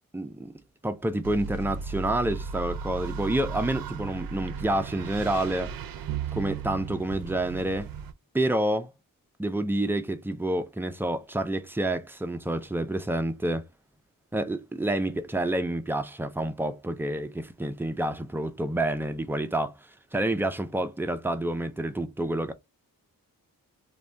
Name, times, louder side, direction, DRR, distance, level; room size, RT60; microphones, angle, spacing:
voice 1, 0.1-0.5 0.8-5.7 6.3-7.9 8.3-8.9 9.4-13.6 14.3-22.5, right 1 dB, 5° right, 0.3 m, -28 dB
sound 1, 1.2-8.1, right 6 dB, 70° right, 0.5 m, -35 dB
2.6 x 2.2 x 3.2 m
wide cardioid pair, 125°, 35 cm